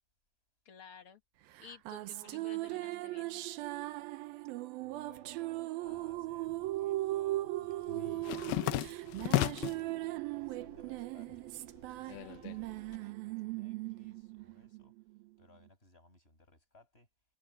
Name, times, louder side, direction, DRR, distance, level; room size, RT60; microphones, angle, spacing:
voice 1, 0.6-1.2 1.6-3.5, left 7 dB, 55° left, 1.5 m, -54 dB
sound 1, 1.6-15.2, right 17 dB, 75° right, 2.5 m, -38 dB
voice 2, 4.8-9.9 10.3-11.5 11.7-14.9 15.4-17.1, left 2 dB, 15° left, 8.1 m, -63 dB
sound 2, 6.0-6.8 7.1-9.9 10.3-11.0 11.3-13.0, left 17 dB, 80° left, 2.4 m, -35 dB
omnidirectional pair, 4.7 m